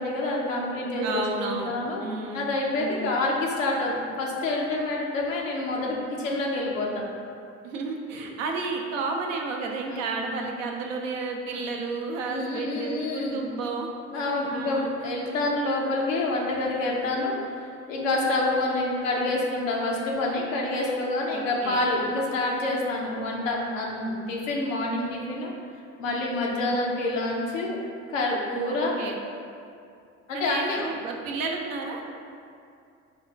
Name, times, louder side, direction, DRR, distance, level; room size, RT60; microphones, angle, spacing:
voice 1, 0.0-2.0 2.3-7.0 9.9-10.3 11.5-11.6 12.2-13.4 14.1-25.5 26.0-27.8 28.1-29.0 30.3-30.8, left 2 dB, 90° left, -2 dB, 0.6 m, -27 dB
voice 2, 1.0-1.7 2.0-2.5 2.8-3.1 7.6-13.9 14.5-14.9 21.3-21.8 26.2-26.7 28.7-29.2 30.3-32.1, right 3 dB, 85° right, 1 dB, 0.5 m, -32 dB
4.2 x 2.3 x 3.2 m, 2.4 s
hypercardioid pair, 60°, 38 cm